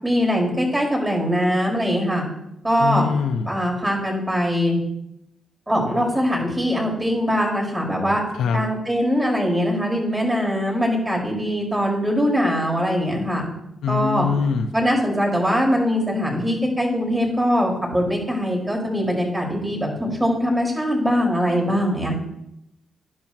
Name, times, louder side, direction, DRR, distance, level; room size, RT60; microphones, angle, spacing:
voice 1, 0.0-2.2 2.6-3.0 3.5-4.8 5.7-8.2 8.5-13.4 13.9-14.3 14.7-22.1, equal, 10° right, -1 dB, 5.3 m, -22 dB
voice 2, 2.8-3.5 8.3-8.6 13.8-14.7, left 6 dB, 85° left, 7 dB, 0.9 m, -23 dB
18.0 x 10.5 x 3.1 m, 0.84 s
cardioid pair, 60°, 0 cm